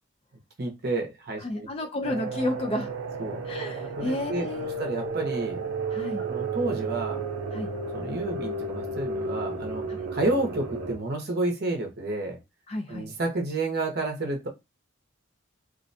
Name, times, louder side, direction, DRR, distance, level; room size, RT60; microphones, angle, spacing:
voice 1, 0.6-1.7 3.2-3.4 4.0-4.5 4.8-5.6 6.2-7.2 7.9-9.8 10.1-12.4 12.9-14.5, right 2 dB, 50° right, 1 dB, 0.7 m, -30 dB
voice 2, 1.4-2.9 3.4-4.7 5.9-6.2 7.5-7.7 12.7-13.1, left 1 dB, 30° left, 4 dB, 0.3 m, -31 dB
sound 1, 2.0-11.0, right 3 dB, 85° right, 0.5 m, -33 dB
2.4 x 2.1 x 2.6 m, 0.22 s
head